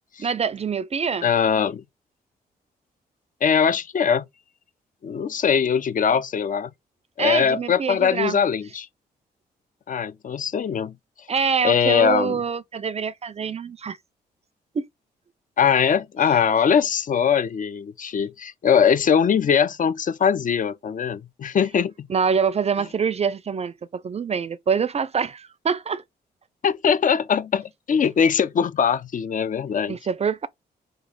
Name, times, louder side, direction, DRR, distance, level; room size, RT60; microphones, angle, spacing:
voice 1, 0.2-1.3 7.2-8.4 11.3-14.0 14.7-14.8 22.1-26.0 29.9-30.5, right 6 dB, 35° right, 0.4 m, -25 dB
voice 2, 1.2-1.8 3.4-4.2 5.0-6.7 7.2-8.9 9.9-10.9 11.6-12.4 15.6-22.1 26.6-30.0, left 7 dB, 45° left, 0.5 m, -21 dB
3.1 x 2.4 x 3.9 m
supercardioid pair, 55°, 18 cm